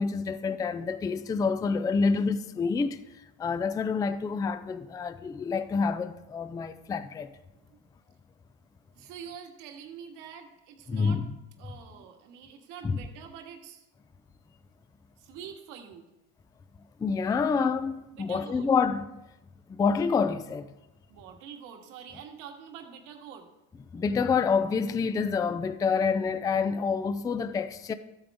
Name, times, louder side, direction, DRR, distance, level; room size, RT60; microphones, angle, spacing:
voice 1, 0.0-3.0 3.4-7.3 10.9-11.3 12.8-13.0 17.0-19.0 19.7-20.7 23.9-27.9, left 5 dB, 10° left, 0.4 m, -27 dB
voice 2, 8.9-11.2 11.6-13.9 15.2-16.1 18.1-18.7 21.1-23.5, right 7 dB, 65° right, 1.8 m, -45 dB
13.5 x 8.7 x 3.6 m
supercardioid pair, 125°, 34 cm